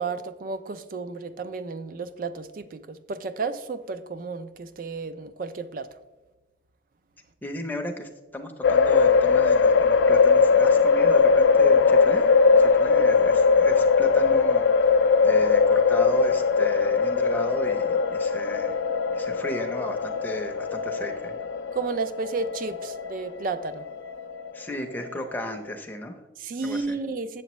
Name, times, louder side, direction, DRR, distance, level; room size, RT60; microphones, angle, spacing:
voice 1, 0.0-5.9 21.7-23.8 26.4-27.4, right 4 dB, 45° right, 12 dB, 0.3 m, -32 dB
voice 2, 7.4-18.8 19.1-21.4 24.5-26.2 26.6-27.0, equal, 10° left, 3 dB, 0.6 m, -34 dB
sound 1, 8.6-25.6, left 5 dB, 70° left, 0.4 m, -21 dB
7.9 x 6.9 x 3.1 m, 1.2 s
head